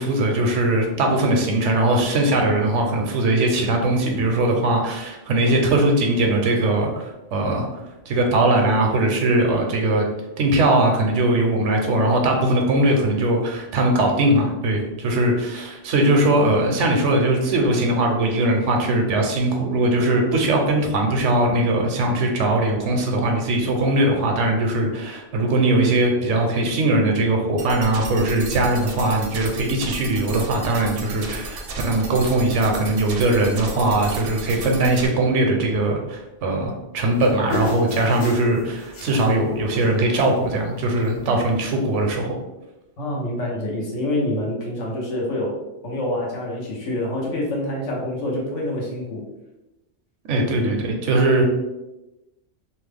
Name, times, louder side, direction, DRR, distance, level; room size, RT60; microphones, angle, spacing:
voice 1, 0.0-7.7 8.1-10.0 10.4-42.3 50.3-51.4, right 1 dB, 85° right, 2 dB, 1.0 m, -20 dB
sound 1, 27.6-35.1, right 2 dB, 60° right, 0.6 m, -34 dB
sound 2, 37.2-39.3 39.6-39.9 40.1-40.5 40.8-41.3 42.1-42.2, left 1 dB, 45° left, 0.6 m, -32 dB
voice 2, 43.0-45.6 45.8-49.2, left 1 dB, 85° left, -3 dB, 1.2 m, -26 dB
3.0 x 2.1 x 3.2 m, 0.99 s
omnidirectional pair, 1.2 m